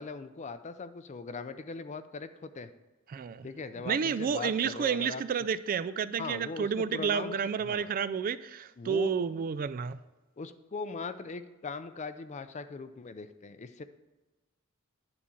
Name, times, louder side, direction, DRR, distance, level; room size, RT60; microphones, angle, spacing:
voice 1, 0.0-2.7 3.4-5.2 6.2-7.9 8.8-9.1 10.4-13.8, left 4 dB, 35° left, 0.4 m, -40 dB
voice 2, 3.1-3.5 3.9-10.0, right 7 dB, 40° right, 0.3 m, -30 dB
9.7 x 4.2 x 7.1 m
head